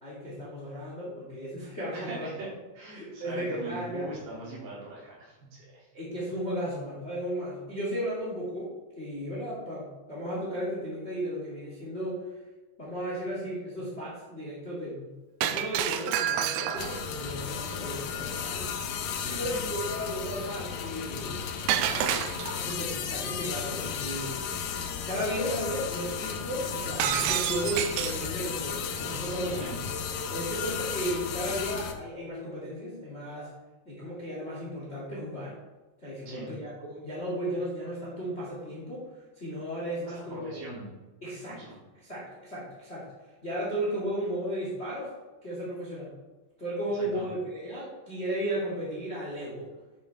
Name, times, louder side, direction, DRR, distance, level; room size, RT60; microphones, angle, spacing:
voice 1, 0.0-2.3 2.9-4.1 5.9-12.3 12.8-18.7 19.4-21.4 21.8-24.4 25.0-29.6 30.3-33.5 33.8-35.5 36.0-39.0 39.4-40.6 41.2-41.6 42.0-43.1 43.4-45.1 45.4-46.1 46.6-49.7, equal, 25° left, -6 dB, 1.7 m, -35 dB
voice 2, 1.9-2.5 2.7-5.4 5.7-5.9 19.1-19.6 29.5-29.8 36.3-36.5 40.3-40.9 41.5-41.8 46.9-47.2, right 2 dB, 65° right, -6 dB, 4.5 m, -41 dB
Shatter, 15.4-17.1 21.7-22.7 27.0-28.3, right 10 dB, 90° right, 2.0 m, -28 dB
sound 1, 16.8-31.9, left 7 dB, 75° left, 2.0 m, -34 dB
9.6 x 6.9 x 3.5 m, 1.2 s
omnidirectional pair, 4.8 m